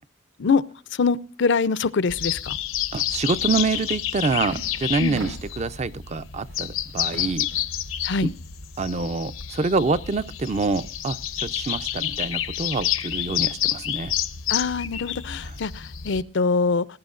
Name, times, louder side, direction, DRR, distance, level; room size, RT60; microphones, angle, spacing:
voice 1, 1.0-2.6 5.0-5.2 8.0-8.3 14.5-16.9, left 4 dB, 60° left, 0.5 m, -23 dB
sound 1, 2.1-16.2, left 11 dB, 90° left, 0.9 m, -29 dB
voice 2, 2.9-7.5 8.2-8.3 8.8-14.1 15.4-15.6, right 3 dB, 35° right, 0.5 m, -26 dB
sound 2, 3.7-3.9 4.2-5.7 6.2-7.8, right 1 dB, 80° right, 4.9 m, -41 dB
19.5 x 11.5 x 2.5 m
head